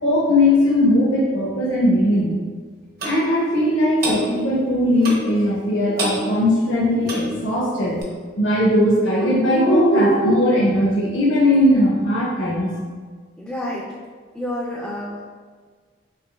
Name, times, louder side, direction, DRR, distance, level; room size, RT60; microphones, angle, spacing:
voice 1, 0.0-2.3 3.0-8.0 8.4-12.7, left 1 dB, 75° left, -6 dB, 0.9 m, -18 dB
Clock, 3.0-3.2 4.0-4.2 5.0-5.3 6.0-6.2 7.0-7.3 8.0-8.1, right 2 dB, 50° right, 0.7 m, -26 dB
voice 2, 13.4-13.9 14.3-15.2, left 1 dB, 5° left, -5 dB, 0.3 m, -29 dB
5.1 x 2.9 x 2.2 m, 1.5 s
head